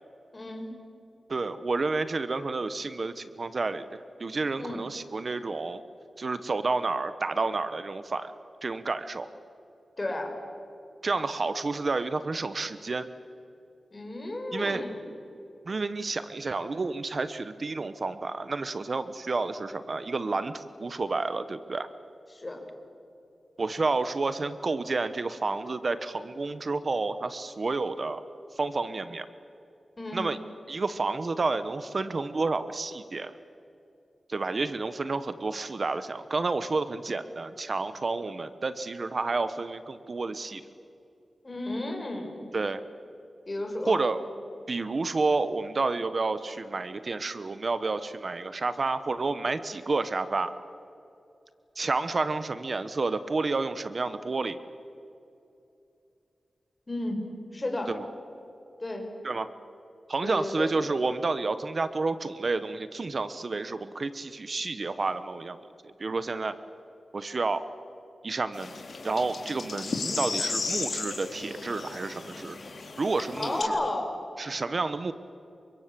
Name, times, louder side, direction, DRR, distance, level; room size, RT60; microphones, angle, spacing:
voice 1, 0.3-0.7 4.6-4.8 10.0-10.3 13.9-15.0 22.3-22.6 30.0-30.2 41.4-42.4 43.5-44.0 56.9-57.2 57.5-57.9 58.8-59.1 60.2-60.8 73.3-74.1, left 1 dB, 30° left, 3 dB, 5.7 m, -33 dB
voice 2, 1.3-5.8 6.2-8.3 8.6-9.3 11.0-13.1 14.5-14.8 15.7-21.9 23.6-28.2 28.5-29.3 30.1-30.4 30.7-33.3 34.3-40.6 42.5-42.8 43.8-44.2 44.7-50.5 51.8-54.6 57.9-58.1 59.2-59.5 60.1-66.6 67.1-67.7 68.2-68.7 69.0-72.6 73.0-73.8 74.4-75.1, right 3 dB, 50° right, 12 dB, 1.0 m, -30 dB
sound 1, 68.5-73.6, left 4 dB, 65° left, 3.7 m, -34 dB
29.5 x 24.5 x 7.5 m, 2.7 s
wide cardioid pair, 105°, 0 cm